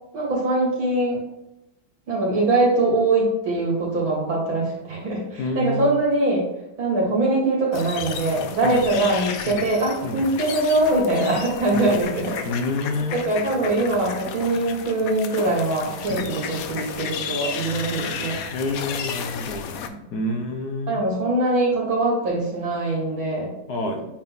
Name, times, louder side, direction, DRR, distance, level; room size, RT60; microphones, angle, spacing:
voice 1, 0.1-1.2 2.1-6.5 6.8-12.4 13.1-18.4 19.9-20.3 20.9-23.5, right 2 dB, 80° right, -4 dB, 3.0 m, -22 dB
voice 2, 5.4-5.9 8.6-8.8 9.5-9.6 10.0-10.2 11.7-11.9 12.4-13.2 16.1-16.2 18.5-19.7 20.1-21.0 23.7-24.0, left 2 dB, 65° left, 3 dB, 1.1 m, -27 dB
sound 1, 7.7-19.9, left 6 dB, 80° left, 0.8 m, -33 dB
8.7 x 3.7 x 3.9 m, 0.86 s
omnidirectional pair, 2.2 m